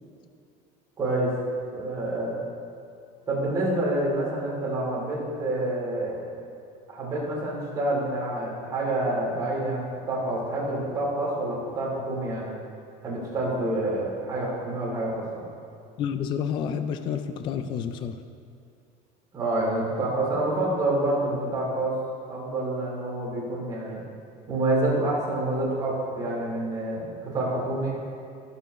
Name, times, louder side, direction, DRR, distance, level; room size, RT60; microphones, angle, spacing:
voice 1, 1.0-1.3 1.7-2.4 3.3-6.5 6.9-12.6 13.0-15.4 19.3-22.0 22.3-24.0 24.5-27.9, right 1 dB, 20° right, -6 dB, 2.8 m, -27 dB
voice 2, 16.0-18.2, left 7 dB, 25° left, 9 dB, 0.3 m, -29 dB
20.0 x 6.9 x 3.1 m, 2.5 s
cardioid pair, 175°, 18 cm